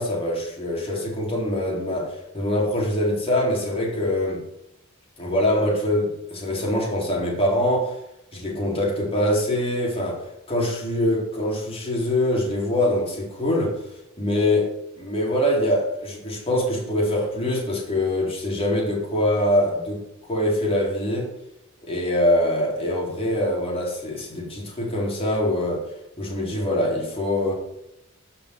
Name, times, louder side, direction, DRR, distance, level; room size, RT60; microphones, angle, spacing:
voice 1, 0.0-4.4 5.2-8.0 8.3-13.8 14.2-20.0 20.3-21.3 21.8-25.9 26.2-27.5, left 1 dB, 30° left, 3.8 m, -24 dB
12.0 x 6.0 x 8.3 m
head